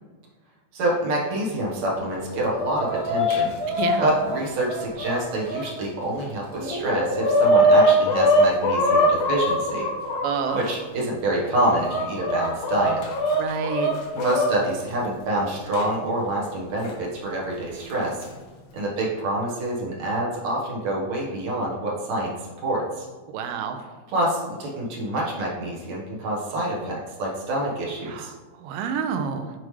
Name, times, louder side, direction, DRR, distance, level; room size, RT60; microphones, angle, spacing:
voice 1, 0.7-3.5 4.0-9.9 10.5-13.1 14.1-18.3 18.7-23.1 24.1-28.3, right 1 dB, 60° right, -4 dB, 2.0 m, -26 dB
Chicken rooster, 2.2-5.6 6.2-6.3 6.6-10.6 11.2-14.5 15.7-15.8 16.8-16.9 17.9-18.2, equal, 70° left, 2.7 m, -22 dB
voice 2, 3.8-4.1 10.2-10.7 13.4-13.9 23.3-23.8 28.1-29.5, right 6 dB, 80° right, 7 dB, 2.1 m, -28 dB
7.3 x 4.8 x 3.1 m, 1.3 s
omnidirectional pair, 4.2 m